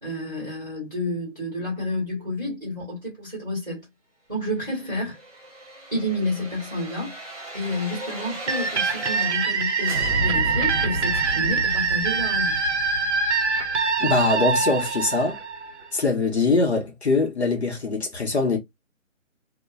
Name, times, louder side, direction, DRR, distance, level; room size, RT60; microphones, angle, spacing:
voice 1, 0.0-3.9 4.3-5.2 5.9-7.2 7.5-12.6, left 1 dB, ahead, 1.0 m, -30 dB
sound 1, 4.8-9.6 9.8-14.7 15.1-15.2, equal, 30° right, 0.9 m, -34 dB
sound 2, 8.5-16.0, right 5 dB, 55° right, 0.6 m, -24 dB
voice 2, 14.0-15.4 15.9-18.6, left 3 dB, 55° left, 0.9 m, -22 dB
2.9 x 2.1 x 2.2 m
hypercardioid pair, 175°, 40 cm